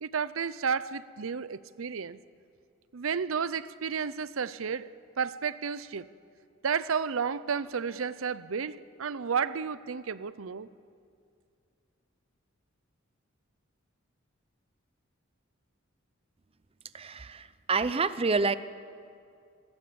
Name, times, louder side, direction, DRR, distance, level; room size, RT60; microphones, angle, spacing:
voice 1, 0.0-2.2 2.9-4.9 5.2-6.1 6.6-10.7, right 6 dB, 90° right, 17 dB, 0.6 m, -32 dB
voice 2, 16.9-18.5, right 4 dB, 30° right, 14 dB, 0.6 m, -28 dB
26.5 x 17.5 x 7.0 m, 2.4 s
head